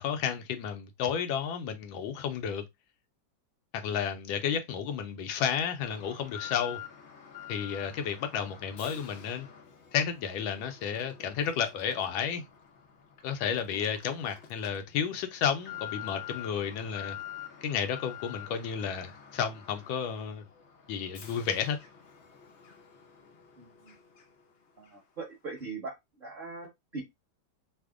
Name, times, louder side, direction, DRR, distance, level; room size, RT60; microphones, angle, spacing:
voice 1, 0.0-2.6 3.7-6.8 7.5-9.5 9.9-12.4 13.2-17.2 17.6-20.4 20.9-21.8, left 7 dB, 85° left, 1.4 m, -32 dB
Alarm, 5.8-24.5 24.8-24.9 25.6-25.7, left 10 dB, 65° left, 0.6 m, -47 dB
voice 2, 23.6-23.9 24.8-27.0, right 4 dB, 35° right, 1.0 m, -41 dB
3.4 x 2.1 x 3.4 m
omnidirectional pair, 2.1 m